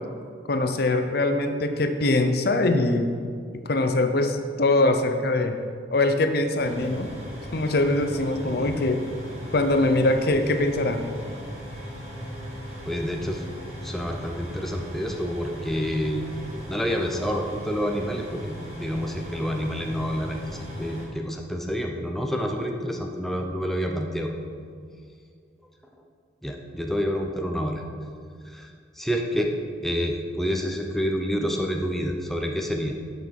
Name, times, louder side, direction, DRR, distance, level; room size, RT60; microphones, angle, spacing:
voice 1, 0.5-3.1 3.5-5.6 5.9-7.1 7.5-9.0 9.5-11.0, left 2 dB, 55° left, 7 dB, 0.7 m, -22 dB
sound 1, 6.6-21.1, equal, 35° right, 1.9 m, -38 dB
voice 2, 8.4-8.8 12.9-13.4 13.8-16.3 16.7-24.3 26.4-27.8 28.5-29.6 29.8-32.9, equal, ahead, 2 dB, 0.6 m, -28 dB
10.5 x 6.2 x 5.3 m, 2.2 s
head